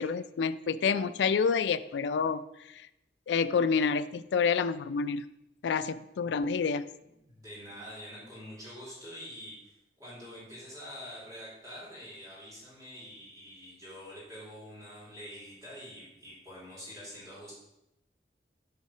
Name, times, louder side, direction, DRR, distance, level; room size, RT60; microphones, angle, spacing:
voice 1, 0.0-2.4 3.3-5.3 5.6-6.9, left 5 dB, 90° left, 14 dB, 0.3 m, -28 dB
voice 2, 7.0-17.5, equal, 20° right, -8 dB, 2.4 m, -46 dB
7.0 x 3.7 x 5.5 m, 0.87 s
head